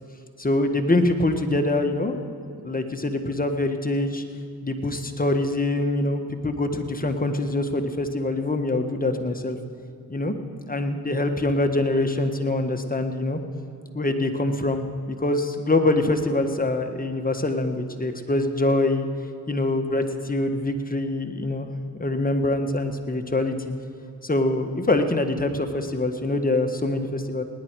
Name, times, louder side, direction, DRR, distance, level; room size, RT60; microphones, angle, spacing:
voice 1, 0.4-2.2 2.6-4.2 4.6-9.6 10.1-10.3 10.7-13.4 13.9-19.1 19.5-21.7 22.0-23.7 24.2-27.4, left 2 dB, 25° left, 6 dB, 1.5 m, -24 dB
19.5 x 10.0 x 4.7 m, 2.4 s
supercardioid pair, 45°, 37 cm